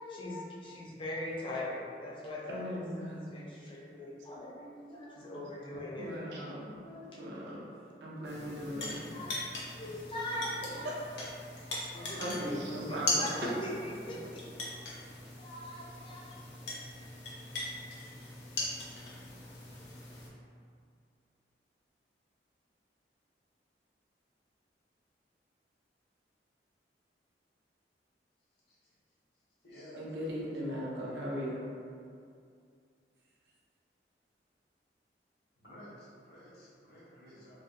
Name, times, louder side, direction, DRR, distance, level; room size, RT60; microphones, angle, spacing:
voice 1, 0.0-6.2 6.5-7.2 8.2-8.4 9.1-9.3 9.8-11.0 11.4-14.9 15.4-16.3, left 1 dB, 30° left, -5 dB, 0.4 m, -41 dB
voice 2, 2.5-3.4 6.0-6.8 7.2-7.7 8.0-9.2 12.2-13.2 14.2-14.3 30.0-31.6, equal, 85° right, -5 dB, 0.5 m, -38 dB
sound 1, 8.2-20.3, left 2 dB, 85° left, 0.5 m, -40 dB
voice 3, 29.6-31.3 35.6-37.5, equal, 65° left, -8 dB, 0.9 m, -52 dB
2.6 x 2.1 x 2.5 m, 2.3 s
head